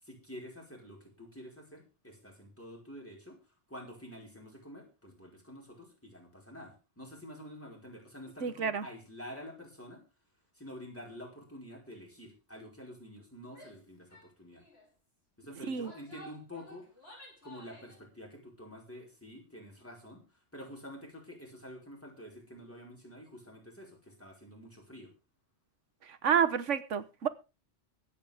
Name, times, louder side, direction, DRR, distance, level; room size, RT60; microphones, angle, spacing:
voice 1, 0.0-3.4 3.7-10.0 10.5-14.6 15.4-16.9 17.4-20.2 20.5-25.1, equal, 10° left, 5.0 m, -48 dB
voice 2, 8.4-8.8 15.7-15.9 26.2-27.3, right 7 dB, 90° right, 1.5 m, -29 dB
Female speech woman speaking / Yell, 13.5-13.8 14.1-14.3 14.6-14.9 15.6-18.0, equal, 60° left, 6.4 m, -53 dB
24.0 x 8.5 x 3.5 m
omnidirectional pair, 1.2 m